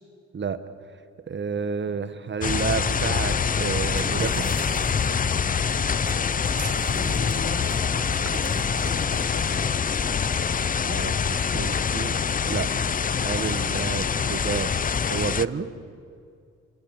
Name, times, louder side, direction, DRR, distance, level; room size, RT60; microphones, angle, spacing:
voice 1, 1.3-4.5 6.9-7.2 10.8-12.1 12.4-12.7 13.2-14.7 15.1-15.7, right 6 dB, 40° right, 11 dB, 1.5 m, -30 dB
sound 1, 2.4-15.4, left 6 dB, 30° left, 0.6 m, -25 dB
sound 2, 2.8-10.4, equal, 5° left, 1.9 m, -43 dB
sound 3, 3.8-9.9, right 7 dB, 55° right, 1.8 m, -42 dB
voice 2, 5.7-6.0 7.0-9.7, left 3 dB, 80° left, 4 dB, 4.6 m, -41 dB
26.5 x 26.0 x 7.3 m, 2.4 s
cardioid pair, 90°, 30 cm